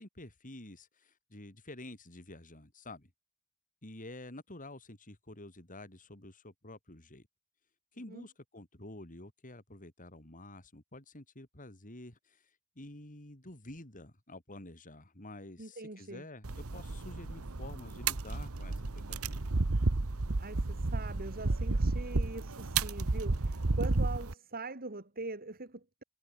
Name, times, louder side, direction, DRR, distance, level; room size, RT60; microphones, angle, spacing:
voice 1, 0.0-3.1 3.8-7.3 7.9-12.5 12.8-19.5 23.7-23.8, left 1 dB, 40° left, 4.2 m, -49 dB
voice 2, 15.6-16.2 20.4-26.0, right 3 dB, 45° right, 3.0 m, -43 dB
sound 1, 16.4-24.3, right 3 dB, 75° right, 1.2 m, -32 dB
head